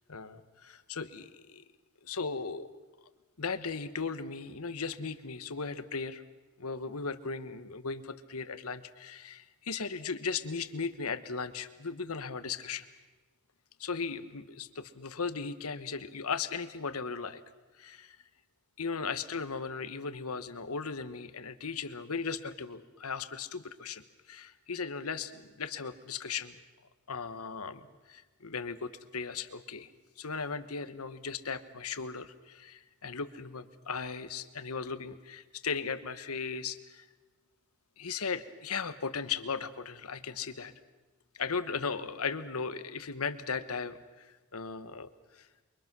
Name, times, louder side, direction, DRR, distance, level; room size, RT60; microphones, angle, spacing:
voice 1, 0.1-1.6 2.0-2.7 3.4-6.2 6.6-12.9 13.8-17.4 17.8-18.2 18.8-26.6 27.1-29.9 30.2-37.1 38.0-40.7 41.3-45.5, left 5 dB, 90° left, 12 dB, 1.2 m, -37 dB
28.5 x 23.5 x 6.2 m, 1.2 s
head